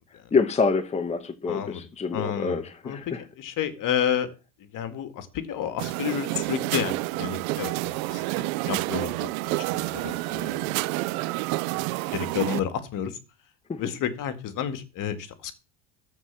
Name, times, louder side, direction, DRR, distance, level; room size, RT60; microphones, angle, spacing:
voice 1, 0.3-3.2 13.7-13.8, left 4 dB, 15° left, 1.1 m, -26 dB
voice 2, 1.5-1.8 2.1-4.3 4.6-10.9 12.1-13.2 13.8-15.5, left 9 dB, 50° left, 2.0 m, -31 dB
sound 1, 5.8-12.6, right 21 dB, 75° right, 0.6 m, -29 dB
13.5 x 4.8 x 7.4 m
supercardioid pair, 115°, 41 cm